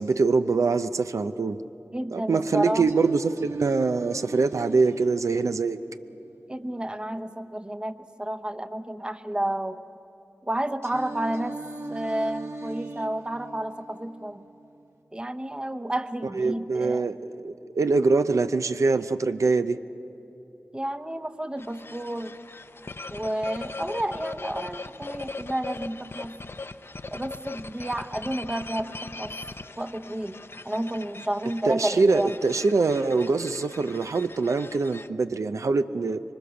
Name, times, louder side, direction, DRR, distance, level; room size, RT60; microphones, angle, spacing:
voice 1, 0.0-1.6 2.1-5.8 16.3-19.8 31.7-36.2, right 4 dB, 80° right, 10 dB, 0.6 m, -24 dB
voice 2, 1.9-2.9 6.5-9.8 10.5-11.6 11.9-14.4 15.1-17.1 20.7-22.4 23.1-26.4 27.1-29.3 29.8-32.4, right 1 dB, 20° right, 9 dB, 0.8 m, -31 dB
Singing, 2.9-6.9 10.8-14.9, right 2 dB, 55° right, 1.3 m, -40 dB
sound 1, 21.6-35.1, left 3 dB, 50° left, 0.6 m, -40 dB
26.0 x 23.5 x 7.0 m, 2.9 s
wide cardioid pair, 80°, 5 cm